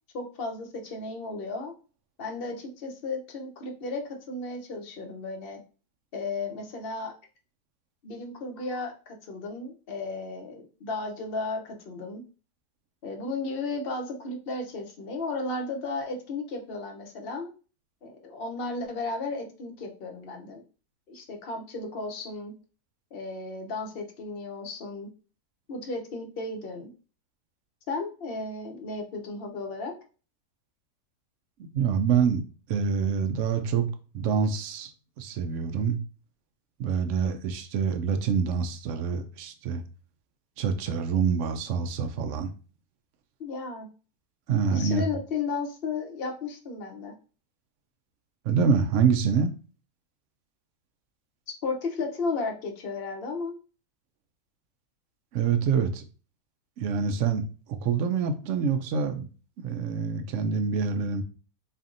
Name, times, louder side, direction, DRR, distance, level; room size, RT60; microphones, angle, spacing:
voice 1, 0.1-1.7 2.2-5.6 6.1-7.1 8.0-12.2 13.0-17.5 18.0-20.6 21.1-22.5 23.1-25.1 25.7-26.9 27.9-29.9 43.4-43.9 44.7-47.1 51.5-53.5, left 3 dB, 50° left, 3 dB, 0.7 m, -34 dB
voice 2, 31.7-32.4 32.7-33.9 34.1-34.9 35.2-36.0 36.8-39.8 40.6-42.5 44.5-45.0 48.5-49.5 55.3-56.0 56.8-59.3 59.6-61.2, right 6 dB, 85° right, 7 dB, 0.6 m, -26 dB
4.1 x 3.3 x 2.5 m, 0.36 s
omnidirectional pair, 1.9 m